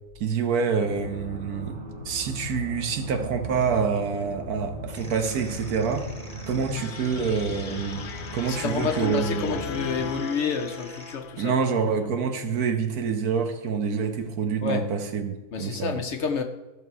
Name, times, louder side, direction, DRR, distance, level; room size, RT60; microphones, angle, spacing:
voice 1, 0.2-1.8 2.0-6.1 6.5-9.6 11.4-16.0, right 5 dB, 75° right, 1.5 m, -27 dB
sound 1, 0.8-10.1, right 1 dB, 40° right, 1.5 m, -38 dB
sound 2, 4.9-11.2, equal, 5° left, 1.3 m, -46 dB
sound 3, 6.7-12.0, left 7 dB, 85° left, 1.2 m, -38 dB
voice 2, 8.5-11.6 14.6-14.9 15.5-16.4, left 5 dB, 60° left, 0.8 m, -29 dB
14.5 x 5.8 x 4.6 m
omnidirectional pair, 1.6 m